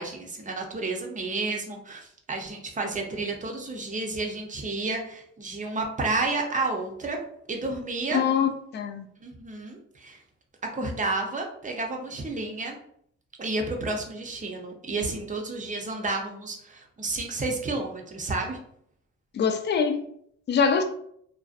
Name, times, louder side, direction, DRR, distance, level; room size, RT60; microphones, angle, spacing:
voice 1, 0.0-7.2 7.5-8.2 9.2-10.2 10.6-12.8 13.4-18.6, right 3 dB, 25° right, 0.6 m, -31 dB
voice 2, 8.1-9.1 19.3-20.0 20.5-20.8, left 6 dB, 35° left, 0.4 m, -24 dB
2.5 x 2.1 x 2.4 m
cardioid pair, 90°, 30 cm